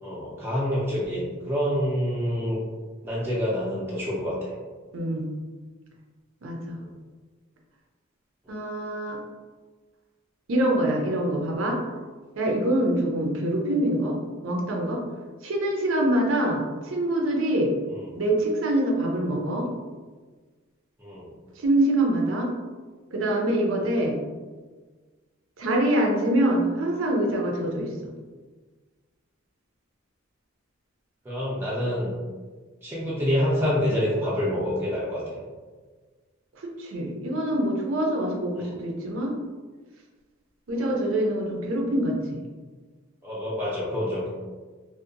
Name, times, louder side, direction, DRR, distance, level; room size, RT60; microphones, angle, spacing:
voice 1, 0.0-2.6 3.0-4.5 17.9-18.1 21.0-21.3 31.3-32.1 32.8-35.4 38.6-38.8 40.8-40.9 43.2-44.3, equal, 10° right, -7 dB, 0.4 m, -27 dB
voice 2, 4.9-5.3 6.4-6.8 8.5-9.2 10.5-11.8 12.4-14.2 14.4-15.0 15.4-17.7 18.2-19.7 21.6-22.5 23.1-24.2 25.6-28.1 36.8-39.3 40.7-42.4, right 1 dB, 80° right, 0 dB, 0.5 m, -25 dB
2.7 x 2.1 x 2.5 m, 1.4 s
head